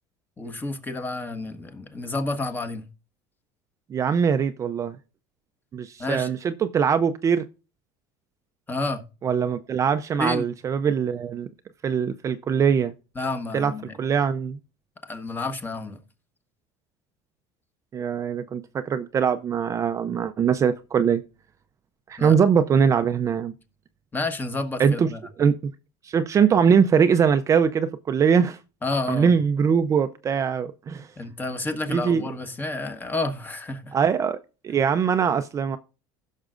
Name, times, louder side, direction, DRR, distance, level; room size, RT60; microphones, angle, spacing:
voice 1, 0.4-2.9 6.0-6.3 8.7-9.0 10.2-10.5 13.1-13.9 15.1-16.0 22.2-22.3 24.1-25.2 28.8-29.4 31.2-34.0, left 2 dB, 20° left, 1.4 m, -30 dB
voice 2, 3.9-5.0 5.7-7.4 9.2-11.5 11.8-12.9 13.5-13.7 14.0-14.6 17.9-21.2 22.1-23.5 24.8-25.1 25.4-25.7 26.0-28.6 29.1-31.1 31.9-32.2 33.9-34.4 34.6-35.8, right 7 dB, 30° right, 0.6 m, -22 dB
16.0 x 6.4 x 2.5 m
cardioid pair, 130°, 11 cm